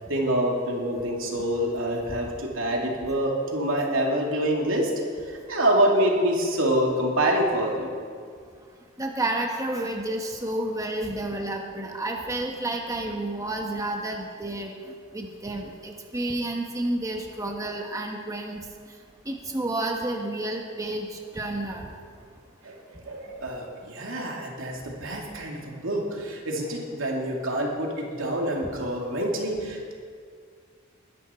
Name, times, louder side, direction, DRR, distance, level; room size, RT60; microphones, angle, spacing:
voice 1, 0.1-4.9 5.3-7.9 22.6-29.9, right 1 dB, 85° right, -1 dB, 2.7 m, -26 dB
voice 2, 9.0-14.7 15.1-18.6 19.3-21.9, right 1 dB, 15° right, 2 dB, 1.2 m, -30 dB
21.0 x 11.0 x 4.4 m, 2.1 s
head